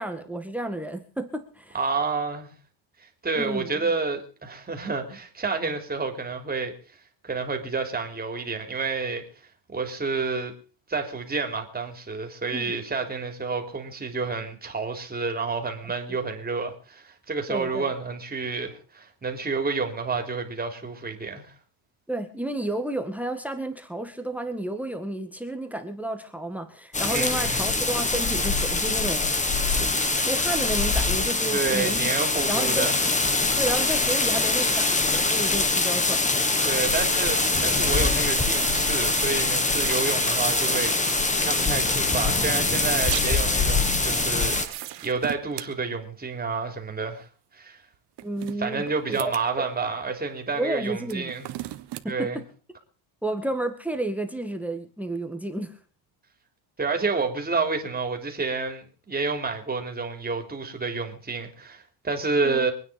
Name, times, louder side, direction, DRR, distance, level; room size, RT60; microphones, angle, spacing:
voice 1, 0.0-1.8 3.4-3.7 12.5-12.7 16.1-16.2 17.5-17.9 22.1-29.9 30.2-32.1 32.4-32.9 33.6-36.2 48.2-48.8 49.1-49.3 49.6-49.7 50.5-51.3 52.0-52.4 53.2-55.7 62.4-62.7, right 1 dB, 5° right, 1.7 m, -31 dB
voice 2, 1.7-2.5 3.2-6.7 7.2-9.2 9.7-10.5 10.9-21.5 27.1-27.6 31.5-33.0 36.6-47.3 47.5-47.8 48.6-51.5 52.1-52.4 56.8-62.7, right 4 dB, 20° right, 3.6 m, -29 dB
sound 1, 26.9-44.7, left 3 dB, 15° left, 1.7 m, -24 dB
sound 2, 36.6-45.1, right 16 dB, 80° right, 3.0 m, -36 dB
sound 3, 44.7-45.7 47.9-49.5 51.0-52.1, right 15 dB, 55° right, 1.5 m, -38 dB
25.0 x 9.7 x 5.2 m
cardioid pair, 130°, 48 cm